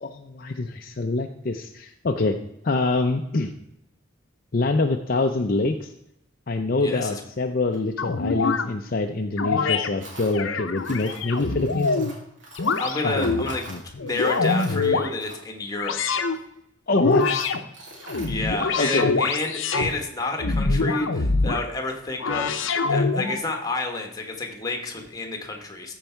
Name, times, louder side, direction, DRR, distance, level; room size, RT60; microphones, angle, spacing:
voice 1, 0.0-2.4 2.6-3.5 4.5-5.9 6.5-12.0 13.0-13.8 16.9-17.2 18.8-19.2, left 3 dB, 45° left, 4 dB, 0.5 m, -25 dB
voice 2, 6.8-7.2 12.8-13.7 14.0-16.4 18.3-22.5 22.9-25.9, left 2 dB, 20° left, 4 dB, 1.3 m, -30 dB
Tools, 7.7-7.8 10.0-10.4 10.8-15.7 16.4-16.5 16.9-18.3, right 1 dB, 65° right, 2.9 m, -43 dB
sound 1, 8.0-8.7 9.4-9.9 10.3-12.1 12.6-13.5 13.9-15.1 15.8-16.4 16.9-17.6 18.0-19.9 20.4-21.6 22.2-23.4, left 4 dB, 75° left, 0.8 m, -24 dB
14.0 x 4.7 x 4.5 m, 0.81 s
head